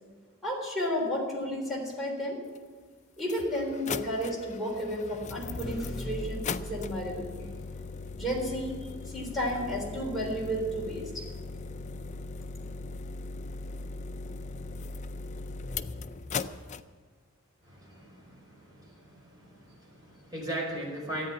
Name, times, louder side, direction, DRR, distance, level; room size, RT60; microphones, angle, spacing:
voice 1, 0.4-2.4 3.2-7.3 8.2-11.3, equal, ahead, -3 dB, 3.6 m, -32 dB
sound 1, 2.6-2.7 3.2-16.8, left 4 dB, 35° left, 0.4 m, -38 dB
voice 2, 17.6-21.3, right 1 dB, 20° right, -3 dB, 4.8 m, -39 dB
13.5 x 9.3 x 8.6 m, 1.5 s
head